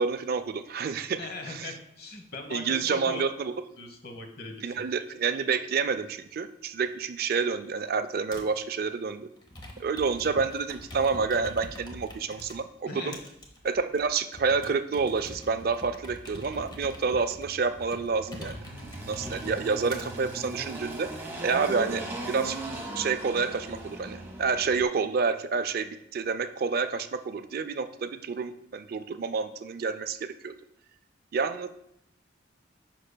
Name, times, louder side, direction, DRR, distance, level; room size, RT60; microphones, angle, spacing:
voice 1, 0.0-1.2 1.5-1.7 2.5-3.5 4.6-9.3 9.8-13.1 13.6-18.6 19.1-22.6 22.9-30.6 31.3-31.7, right 5 dB, 50° right, 10 dB, 0.4 m, -29 dB
voice 2, 1.2-3.2 3.8-4.8 12.9-13.2, left 3 dB, 55° left, 5 dB, 1.0 m, -39 dB
Computer keyboard, 8.3-8.6 9.4-12.6 13.1-20.1 20.7-21.3, equal, 25° left, 0.8 m, -44 dB
Engine, 17.4-24.8, right 1 dB, 10° right, 1.0 m, -39 dB
10.0 x 5.5 x 2.2 m, 0.76 s
head